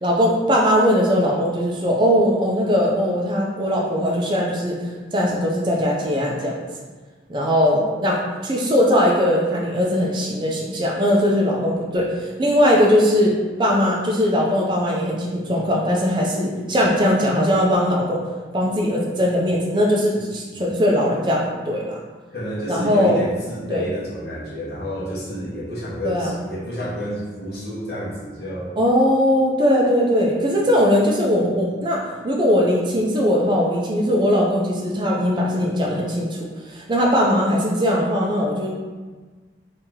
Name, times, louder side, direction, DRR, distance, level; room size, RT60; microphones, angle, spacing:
voice 1, 0.0-4.8 5.1-6.6 7.3-18.2 18.5-22.0 22.7-23.2 23.7-23.8 26.0-26.4 28.8-36.4 36.7-38.7, equal, 25° right, -2 dB, 0.5 m, -20 dB
voice 2, 22.3-28.8, equal, 65° left, -7 dB, 1.0 m, -29 dB
2.9 x 2.7 x 3.8 m, 1.3 s
head